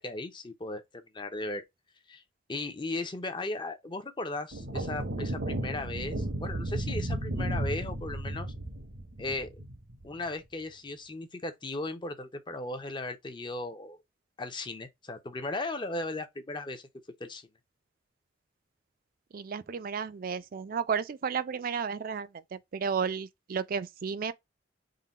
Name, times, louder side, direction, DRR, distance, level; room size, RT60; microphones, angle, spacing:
voice 1, 0.0-1.6 2.1-2.2 2.5-8.5 9.2-9.6 10.0-14.0 14.4-16.9 17.2-17.4, left 2 dB, 25° left, 0.6 m, -37 dB
sound 1, 4.5-10.1, right 1 dB, 90° right, 1.0 m, -34 dB
voice 2, 19.3-24.3, right 6 dB, 50° right, 0.4 m, -33 dB
3.8 x 2.2 x 4.0 m
head